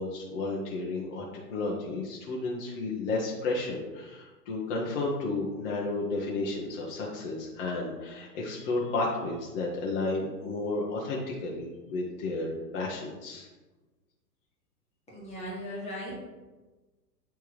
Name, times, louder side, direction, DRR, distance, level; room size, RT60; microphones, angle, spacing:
voice 1, 0.0-13.5, left 2 dB, 45° left, -3 dB, 1.1 m, -32 dB
voice 2, 15.1-16.2, equal, 15° left, -6 dB, 1.9 m, -38 dB
8.7 x 3.4 x 3.2 m, 1.2 s
hypercardioid pair, 120°, 49 cm